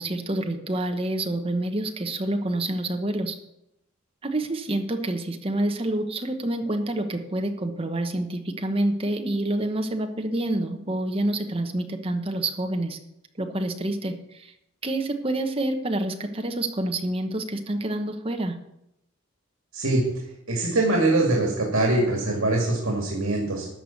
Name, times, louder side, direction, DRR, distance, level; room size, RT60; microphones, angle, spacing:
voice 1, 0.0-3.3 4.2-13.0 13.4-14.5 14.8-18.5, right 1 dB, 25° right, 5 dB, 1.1 m, -27 dB
voice 2, 19.7-20.1 20.5-23.7, right 2 dB, 85° right, 0 dB, 2.2 m, -23 dB
13.0 x 4.9 x 8.4 m, 0.84 s
head